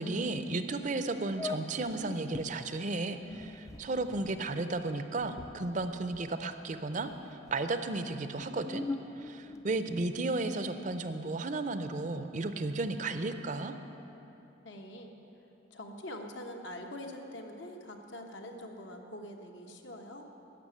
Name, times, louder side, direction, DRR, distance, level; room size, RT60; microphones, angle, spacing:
voice 1, 0.0-7.1 7.5-8.8 9.2-13.7, right 2 dB, 40° right, 9 dB, 0.5 m, -34 dB
sound 1, 0.8-0.9 1.3-2.5 3.1-6.6 6.9-7.6 8.2-10.2, left 3 dB, 15° left, 0.4 m, -43 dB
voice 2, 14.6-15.1 15.7-20.2, left 1 dB, 75° left, 3 dB, 1.2 m, -44 dB
13.5 x 5.9 x 9.7 m, 3.0 s
head